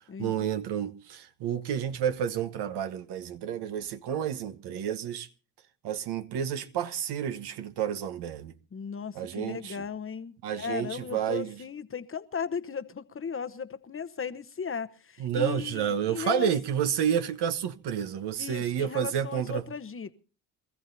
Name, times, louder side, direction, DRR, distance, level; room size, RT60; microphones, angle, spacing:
voice 1, 0.2-5.3 5.8-8.5 9.1-9.7 10.4-11.6 15.2-19.6, right 9 dB, 65° right, 1.3 m, -30 dB
voice 2, 8.7-16.5 18.4-20.2, left 6 dB, 30° left, 1.0 m, -36 dB
25.5 x 14.5 x 2.7 m
hypercardioid pair, 65°, 44 cm